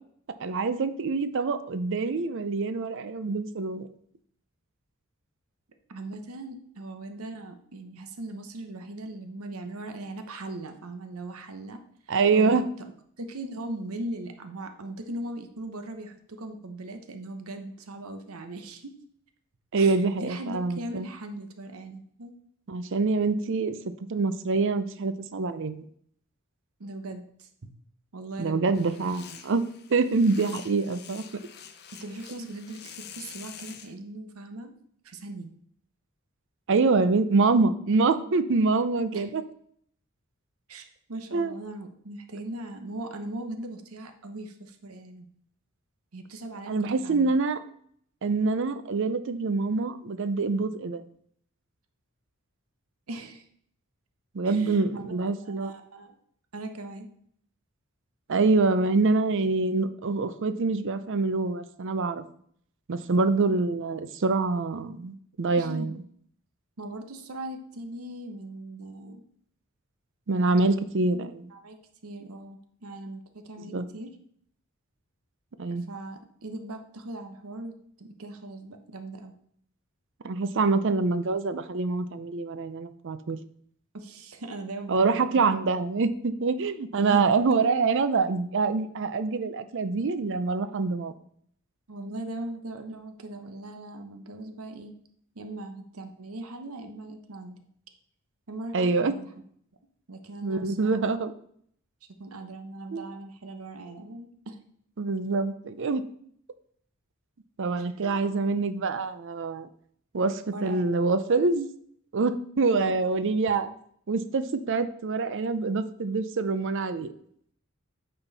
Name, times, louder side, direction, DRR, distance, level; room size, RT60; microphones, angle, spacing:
voice 1, 0.4-3.9 12.1-12.7 19.7-21.1 22.7-23.8 24.1-25.9 28.4-31.2 36.7-39.4 41.3-41.5 46.7-47.6 48.2-51.0 54.3-55.7 58.3-62.2 62.9-66.0 70.3-71.5 73.7-73.9 75.6-75.8 80.2-83.4 84.9-91.1 98.7-99.1 100.4-101.3 102.9-103.0 105.0-106.1 107.6-109.7 110.1-111.7 112.1-113.7 114.1-117.1, right 3 dB, 60° right, 12 dB, 0.5 m, -25 dB
voice 2, 5.9-11.8 12.1-12.6 13.2-18.9 19.8-22.3 26.8-27.7 28.1-28.8 31.9-34.7 35.0-35.5 39.1-39.2 40.7-45.3 46.1-47.3 53.1-53.5 54.4-55.0 55.4-56.2 56.5-57.1 65.6-65.9 66.8-69.2 71.5-74.1 75.9-79.3 83.9-85.5 86.9-87.3 91.9-94.9 95.3-97.6 98.5-99.3 100.1-101.0 102.2-104.6 108.0-108.2 110.5-110.9 112.8-112.9, right 2 dB, 85° right, 7 dB, 0.9 m, -39 dB
sound 1, 28.7-33.9, left 8 dB, 50° left, 0.7 m, -46 dB
8.8 x 4.5 x 4.0 m, 0.64 s
head